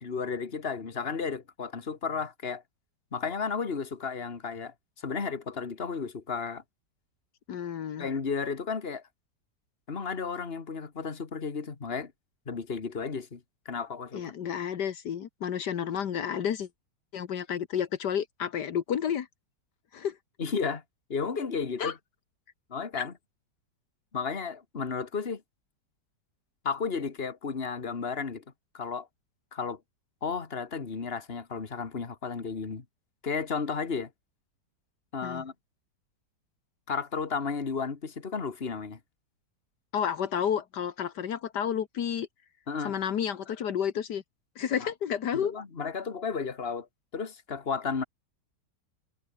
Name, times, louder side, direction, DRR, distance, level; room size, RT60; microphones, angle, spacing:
voice 1, 0.0-2.6 3.1-6.6 8.0-9.0 9.9-12.1 12.5-13.4 13.7-14.3 20.4-20.8 21.1-22.0 22.7-23.1 24.1-25.4 26.6-28.4 28.7-29.1 29.5-29.8 30.2-32.8 33.2-34.1 35.1-35.5 36.9-39.0 42.7-43.0 44.8-44.9 45.3-46.9 47.1-48.0, left 5 dB, 35° left, 2.1 m, -33 dB
voice 2, 7.5-8.1 14.1-16.7 17.1-19.3 19.9-20.2 21.8-21.9 23.0-23.1 35.2-35.4 39.9-42.3 42.8-44.2 44.6-45.5, left 8 dB, 75° left, 1.8 m, -31 dB
omnidirectional pair, 1.8 m